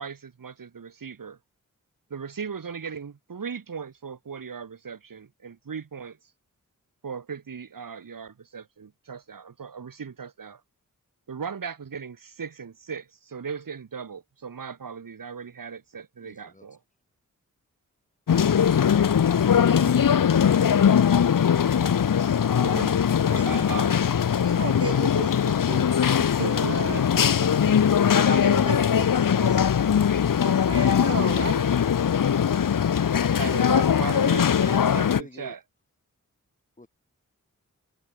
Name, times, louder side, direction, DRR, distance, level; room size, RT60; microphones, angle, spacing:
voice 1, 0.0-1.4 2.1-6.2 7.0-10.6 11.3-16.8 19.6-20.9 22.6-23.2 23.4-24.1 26.2-28.0 33.4-35.1 35.4-35.6, right 6 dB, 85° right, 3.5 m, -37 dB
voice 2, 16.2-16.7 35.0-35.6 36.8-36.9, left 2 dB, 25° left, 7.5 m, -48 dB
sound 1, 18.3-35.2, left 8 dB, 80° left, 1.0 m, -21 dB
voice 3, 24.4-26.0 26.4-27.1 28.1-29.7 30.4-31.7, right 4 dB, 45° right, 2.1 m, -35 dB
wide cardioid pair, 90°, 32 cm